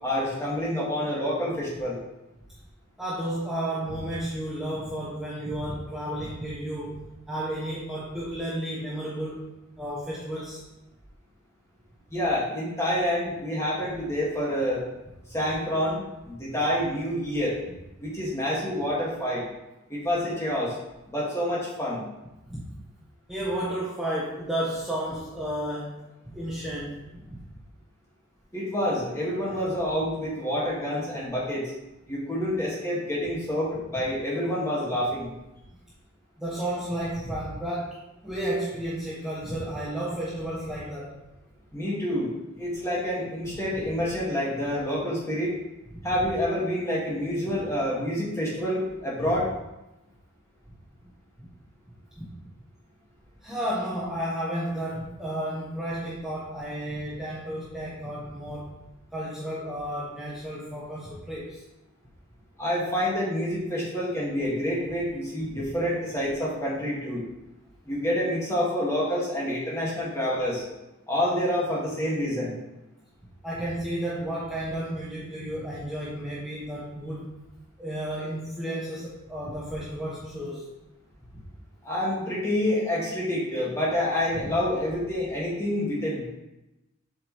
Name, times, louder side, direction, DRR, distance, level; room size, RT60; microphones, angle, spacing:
voice 1, 0.0-2.0 12.1-14.8 15.3-16.0 16.3-17.6 18.0-19.4 19.9-20.8 21.1-22.0 28.5-31.7 32.0-35.3 41.7-42.3 42.6-45.6 46.0-49.5 62.6-67.2 67.9-70.6 71.1-72.5 81.8-86.3, left 1 dB, 15° left, -6 dB, 1.8 m, -27 dB
voice 2, 3.0-9.4 9.8-10.6 22.5-22.6 23.3-27.4 29.5-29.6 36.4-41.2 51.4-51.5 52.2-52.3 53.4-58.7 59.1-61.6 65.5-65.6 73.4-77.3 77.8-80.7, right 1 dB, ahead, -9 dB, 1.1 m, -32 dB
7.6 x 5.0 x 3.1 m, 0.96 s
head